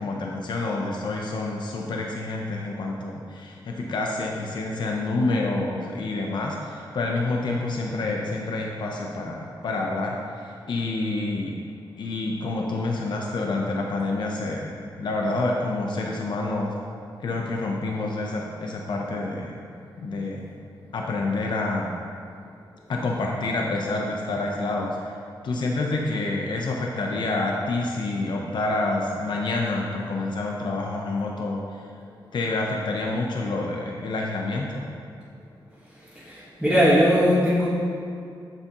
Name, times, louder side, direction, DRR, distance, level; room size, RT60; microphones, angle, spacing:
voice 1, 0.0-11.5 12.0-16.7 17.2-19.6 20.0-20.5 20.9-21.9 22.9-25.1 25.4-31.8 32.3-34.9, left 2 dB, 65° left, -1 dB, 0.7 m, -28 dB
voice 2, 36.1-37.7, equal, 5° right, -10 dB, 1.6 m, -19 dB
8.8 x 7.2 x 3.0 m, 2.4 s
wide cardioid pair, 120°, 8 cm